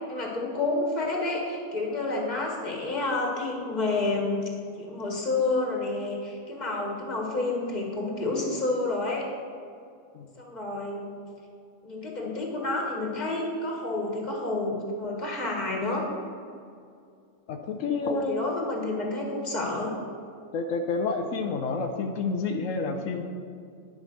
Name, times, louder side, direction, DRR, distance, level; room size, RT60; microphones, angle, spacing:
voice 1, 0.1-4.4 4.8-9.3 10.4-11.1 11.8-16.0 18.0-19.9, left 2 dB, 35° left, -1 dB, 1.8 m, -29 dB
voice 2, 17.5-18.5 20.5-23.2, left 4 dB, 85° left, 5 dB, 1.1 m, -29 dB
10.5 x 5.4 x 6.4 m, 2.4 s
omnidirectional pair, 1.3 m